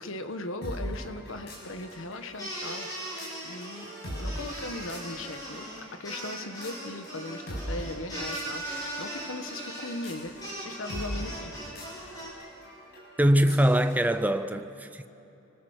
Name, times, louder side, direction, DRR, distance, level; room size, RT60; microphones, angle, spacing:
voice 1, 0.0-2.9 3.4-3.9 4.2-11.6, left 2 dB, 70° left, 1.3 m, -38 dB
sound 1, 0.6-14.3, equal, 50° left, 7.0 m, -42 dB
sound 2, 2.4-12.3, right 1 dB, 20° left, 6.7 m, -39 dB
voice 2, 13.2-15.1, equal, 10° right, 0.6 m, -23 dB
30.0 x 20.5 x 6.6 m
head